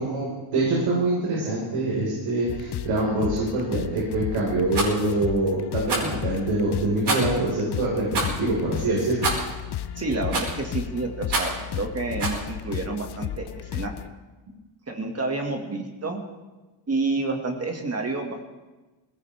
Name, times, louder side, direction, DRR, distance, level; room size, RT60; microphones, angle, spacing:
voice 1, 0.0-8.0 8.4-9.3, right 2 dB, 85° right, -5 dB, 5.1 m, -25 dB
sound 1, 2.5-14.1, left 11 dB, 55° left, 0.8 m, -34 dB
Rattle, 4.7-4.9 5.8-6.2 7.0-7.4 8.1-8.4 9.2-9.5 10.3-10.6 11.3-11.6 12.2-12.4, right 3 dB, 50° right, 5.2 m, -26 dB
voice 2, 10.0-13.9 14.9-16.2 16.9-18.4, right 3 dB, 30° right, 3 dB, 2.1 m, -29 dB
21.0 x 17.5 x 3.5 m, 1.2 s
cardioid pair, 120°, 49 cm